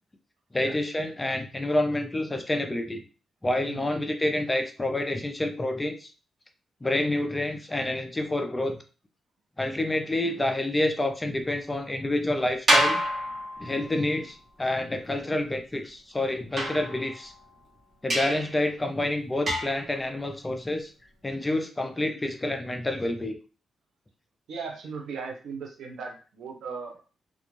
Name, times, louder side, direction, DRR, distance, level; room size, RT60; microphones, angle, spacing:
voice 1, 0.5-3.0 3.4-6.1 6.8-8.8 9.6-13.0 13.6-17.3 18.0-20.9 21.2-23.4, left 1 dB, 15° left, 6 dB, 0.4 m, -28 dB
sound 1, 12.7-14.1 16.6-17.5 18.1-18.6 19.5-19.9, right 1 dB, 40° right, 0.8 m, -27 dB
voice 2, 24.5-27.0, right 5 dB, 85° right, 2 dB, 0.7 m, -37 dB
2.4 x 2.1 x 3.0 m, 0.35 s
cardioid pair, 115°, 0 cm